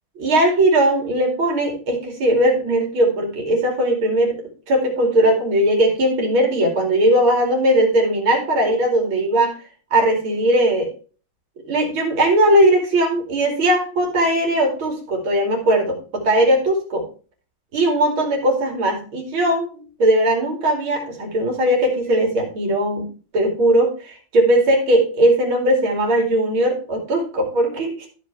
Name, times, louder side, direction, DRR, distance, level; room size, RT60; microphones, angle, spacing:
voice 1, 0.2-9.5 9.9-10.9 11.6-17.0 17.7-23.1 23.3-28.0, right 1 dB, 90° right, 1 dB, 3.5 m, -19 dB
14.0 x 5.3 x 3.3 m, 0.37 s
omnidirectional pair, 2.2 m